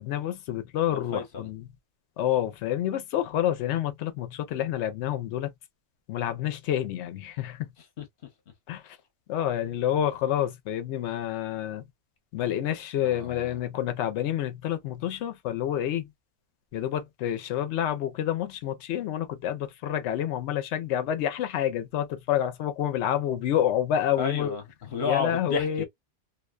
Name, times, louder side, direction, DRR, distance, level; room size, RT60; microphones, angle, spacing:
voice 1, 0.0-1.7 2.2-5.5 6.1-7.7 8.7-9.0 9.3-11.9 12.3-16.1 16.7-24.6 25.0-25.8, left 11 dB, 80° left, 0.9 m, -28 dB
voice 2, 0.9-1.5 8.0-8.1 13.0-13.5 24.2-25.8, left 5 dB, 55° left, 1.0 m, -31 dB
2.5 x 2.1 x 2.2 m
omnidirectional pair, 1.2 m